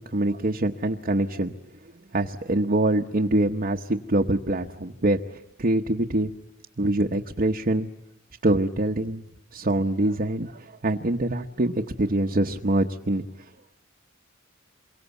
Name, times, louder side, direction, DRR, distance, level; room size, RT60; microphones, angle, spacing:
voice 1, 0.0-1.6 2.1-6.3 6.8-7.9 8.4-9.2 9.5-13.2, right 2 dB, 45° right, 3 dB, 1.0 m, -24 dB
28.0 x 23.5 x 8.2 m, 0.96 s
head